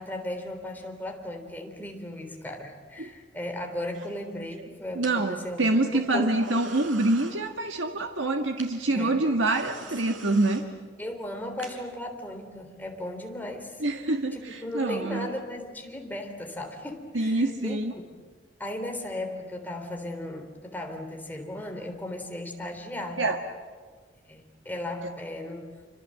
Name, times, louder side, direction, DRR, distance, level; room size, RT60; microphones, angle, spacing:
voice 1, 0.0-6.3 8.9-9.3 11.0-13.8 14.3-17.8 18.6-23.2 24.3-25.7, left 1 dB, 10° left, 3 dB, 3.7 m, -36 dB
sound 1, 3.9-4.3 5.0-5.2 6.4-7.4 8.6-8.7 9.4-10.6 11.5-11.7, right 5 dB, 90° right, 4.7 m, -44 dB
voice 2, 5.0-10.6 13.8-15.3 17.1-17.9 23.2-23.4 25.0-25.1, right 2 dB, 70° right, 3 dB, 1.7 m, -26 dB
27.5 x 25.5 x 7.7 m, 1.5 s
head